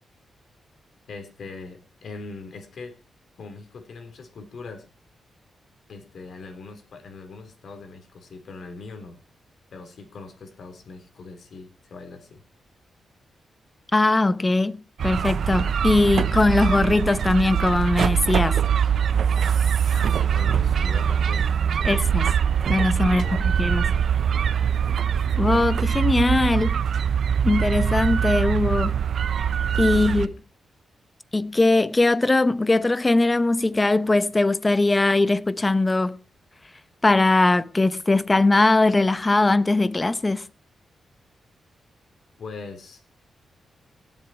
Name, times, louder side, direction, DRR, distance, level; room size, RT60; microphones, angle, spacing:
voice 1, 1.1-3.0 3.4-4.8 5.9-9.2 9.7-12.4 19.9-21.9 23.0-24.0 29.9-30.3 42.4-43.0, left 4 dB, 70° left, 4.0 m, -41 dB
voice 2, 13.9-18.6 21.8-22.3 22.7-23.3 23.6-23.9 25.4-26.8 27.4-29.0 29.8-30.3 31.3-36.2 37.0-40.4, left 2 dB, 25° left, 0.9 m, -20 dB
sound 1, 15.0-30.3, right 8 dB, 70° right, 0.7 m, -23 dB
18.0 x 7.9 x 4.5 m
cardioid pair, 70°, 0 cm